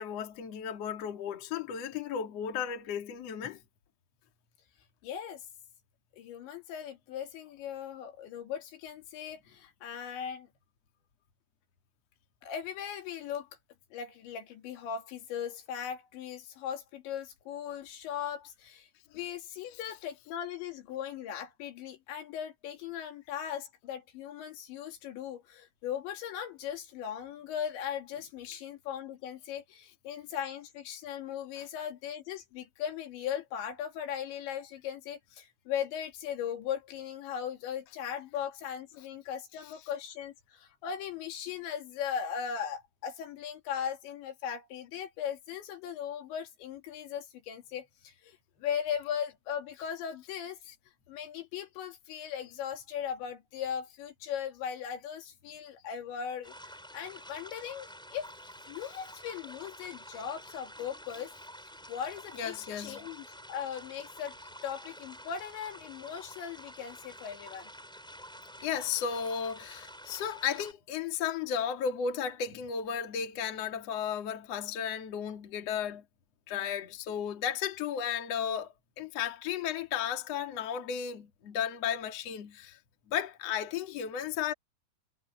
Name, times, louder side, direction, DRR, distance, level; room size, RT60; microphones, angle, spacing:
voice 1, 0.0-3.6 62.4-63.0 68.6-76.0 76.5-78.7 79.0-82.8 83.1-84.5, left 8 dB, 45° left, 2.7 m, -34 dB
voice 2, 5.0-5.5 6.1-10.5 12.4-13.5 13.9-18.9 19.1-50.6 51.1-58.3 58.7-61.3 61.9-64.4 64.6-67.7, left 8 dB, 80° left, 4.8 m, -38 dB
sound 1, 56.4-70.7, equal, ahead, 4.0 m, -49 dB
omnidirectional pair, 5.1 m